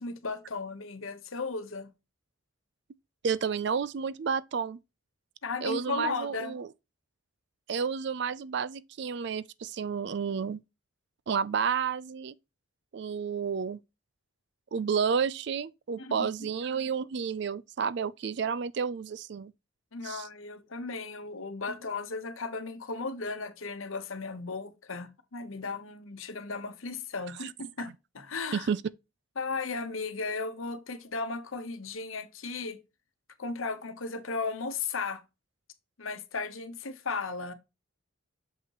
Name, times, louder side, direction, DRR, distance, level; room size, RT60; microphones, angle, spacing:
voice 1, 0.0-1.9 5.4-6.5 16.0-16.3 19.9-28.7 29.4-32.8 33.4-35.2 36.0-37.5, left 4 dB, 80° left, 1.0 m, -35 dB
voice 2, 3.2-4.8 5.6-6.7 7.7-10.6 11.3-12.3 12.9-13.8 14.7-19.5 20.0-20.3 27.4-27.5 28.5-28.8, right 6 dB, 55° right, 0.4 m, -31 dB
6.8 x 5.5 x 3.0 m
head